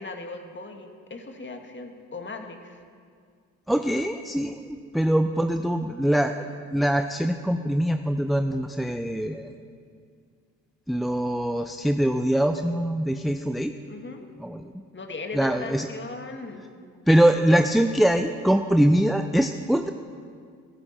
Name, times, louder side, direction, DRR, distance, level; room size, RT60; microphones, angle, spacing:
voice 1, 0.0-2.8 13.9-14.3 14.9-16.6, left 3 dB, 30° left, 5 dB, 2.0 m, -38 dB
voice 2, 3.7-6.4 6.7-9.5 10.9-13.7 14.4-14.7 15.3-15.9 17.1-19.9, right 1 dB, ahead, 6 dB, 0.6 m, -23 dB
15.0 x 15.0 x 4.4 m, 2.1 s
hypercardioid pair, 45°, 40 cm